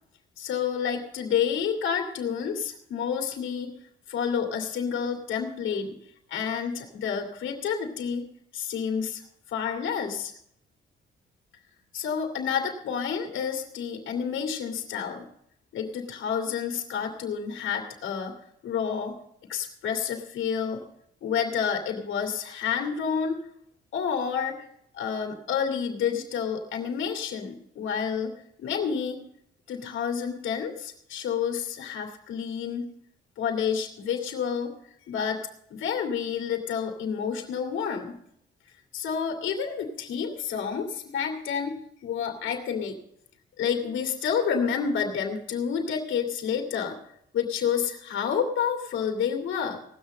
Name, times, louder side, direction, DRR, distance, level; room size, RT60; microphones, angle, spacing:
voice 1, 0.4-3.7 4.1-5.9 6.3-9.2 9.5-10.3 11.9-15.3 15.7-18.3 18.6-19.2 19.5-20.8 21.2-23.4 23.9-24.6 24.9-29.2 29.7-32.9 33.4-34.7 35.1-38.2 38.9-43.0 43.6-47.0 47.3-49.8, left 7 dB, 75° left, 3 dB, 2.4 m, -29 dB
17.5 x 6.6 x 6.5 m, 0.70 s
cardioid pair, 90°, 20 cm